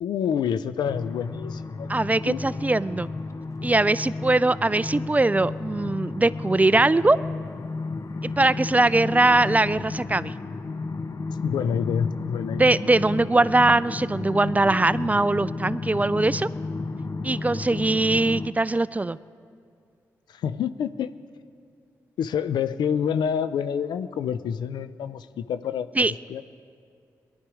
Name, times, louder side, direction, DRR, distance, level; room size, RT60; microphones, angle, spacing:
voice 1, 0.0-1.9 2.3-2.4 11.4-12.8 20.3-21.1 22.2-26.4, left 8 dB, 75° left, 13 dB, 0.5 m, -27 dB
sound 1, 0.8-18.5, left 3 dB, 45° left, 0.7 m, -33 dB
voice 2, 1.9-3.1 3.6-7.2 8.2-10.3 12.5-16.5 17.2-19.2 26.0-26.1, right 2 dB, 20° right, 17 dB, 0.4 m, -21 dB
19.5 x 11.5 x 4.9 m, 2.3 s
supercardioid pair, 40°, 7 cm